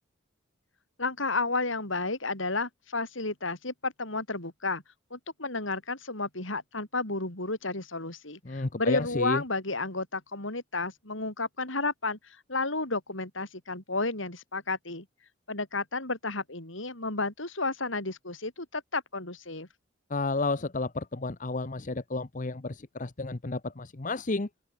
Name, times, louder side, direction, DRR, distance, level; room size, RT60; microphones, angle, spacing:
voice 1, 1.0-4.8 5.1-15.1 15.5-19.7, left 3 dB, 75° left, 5.8 m, -32 dB
voice 2, 8.4-9.4 20.1-24.5, left 3 dB, 40° left, 0.9 m, -31 dB
open air
head